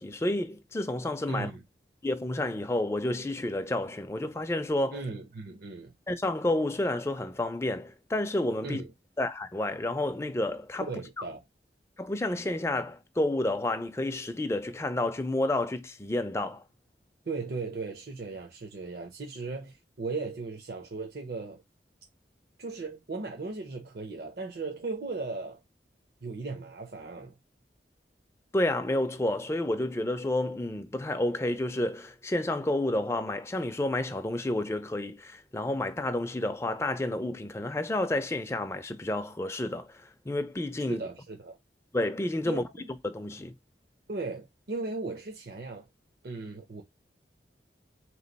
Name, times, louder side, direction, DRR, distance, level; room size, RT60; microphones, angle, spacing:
voice 1, 0.0-1.5 2.0-5.0 6.1-8.8 9.2-10.9 12.0-16.6 28.5-41.0 41.9-42.6 43.0-43.5, left 1 dB, 15° left, 0.4 m, -30 dB
voice 2, 1.3-1.6 4.9-5.9 8.6-8.9 10.8-11.4 17.3-21.6 22.6-25.6 26.2-27.4 40.9-41.6 42.4-42.6 44.1-45.9 46.2-46.8, right 3 dB, 60° right, 0.7 m, -37 dB
3.7 x 3.0 x 4.0 m
head